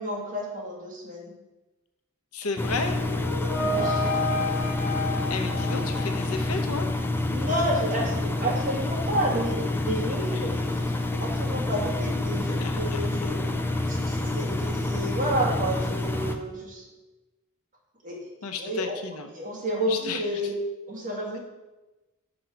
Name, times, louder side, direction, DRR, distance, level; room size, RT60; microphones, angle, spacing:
voice 1, 0.0-1.3 3.6-4.1 7.3-13.4 13.9-16.8 18.0-18.2 18.6-19.0 19.3-20.6 20.9-21.4, right 1 dB, 35° right, -4 dB, 2.1 m, -30 dB
voice 2, 2.3-3.0 5.3-6.9 10.3-10.5 12.6-13.3 18.4-19.3 19.9-20.5, left 4 dB, 85° left, 5 dB, 0.8 m, -33 dB
Engine, 2.6-16.4, left 2 dB, 10° left, 0.4 m, -28 dB
sound 1, 2.7-6.7, left 1 dB, 65° left, 1.7 m, -31 dB
6.0 x 4.6 x 6.2 m, 1.1 s
head